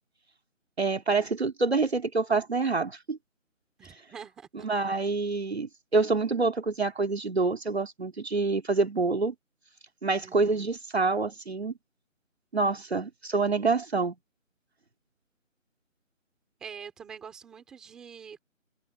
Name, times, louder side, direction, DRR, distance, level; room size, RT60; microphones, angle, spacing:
voice 1, 0.8-3.2 4.6-9.3 10.0-11.7 12.5-14.2, right 3 dB, 50° right, 2.5 m, -27 dB
voice 2, 3.8-4.7 10.2-10.7 16.6-18.4, right 7 dB, ahead, 2.6 m, -45 dB
figure-of-eight pair, 175°, 40 cm